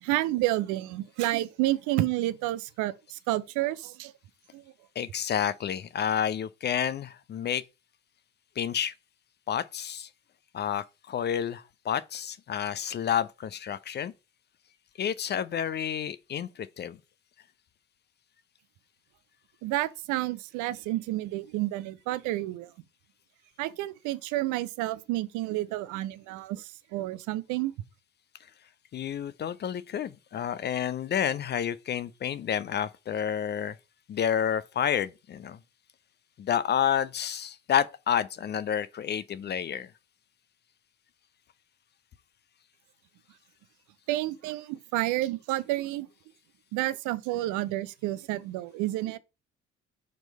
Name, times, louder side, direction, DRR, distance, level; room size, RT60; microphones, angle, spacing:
voice 1, 0.0-4.1 4.5-4.6 19.6-22.7 23.6-27.7 44.1-46.1 46.7-49.2, right 16 dB, 55° right, 0.6 m, -30 dB
voice 2, 5.0-7.6 8.6-8.9 9.5-10.1 10.5-14.1 15.0-17.0 28.9-33.8 34.1-35.6 36.4-39.9, left 9 dB, 30° left, 0.5 m, -30 dB
5.2 x 4.5 x 5.2 m
figure-of-eight pair, 45°, 36 cm